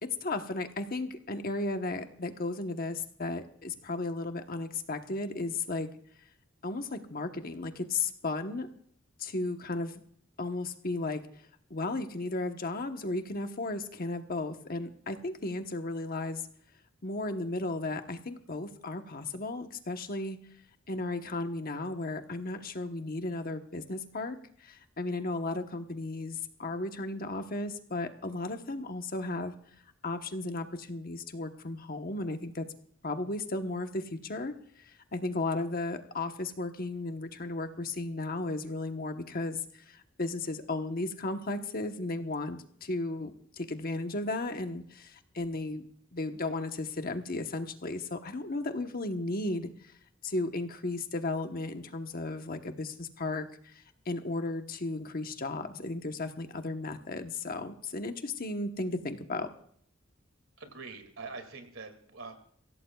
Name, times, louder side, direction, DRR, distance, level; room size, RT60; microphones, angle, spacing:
voice 1, 0.0-5.9 6.6-8.7 9.2-10.0 10.4-11.2 11.7-16.4 17.0-20.4 20.9-29.5 30.0-32.7 33.0-45.8 46.1-49.9 50.2-59.5, left 2 dB, 45° left, 6 dB, 1.1 m, -35 dB
voice 2, 60.6-62.3, right 4 dB, 80° right, 7 dB, 2.4 m, -44 dB
23.5 x 16.5 x 2.4 m, 0.63 s
head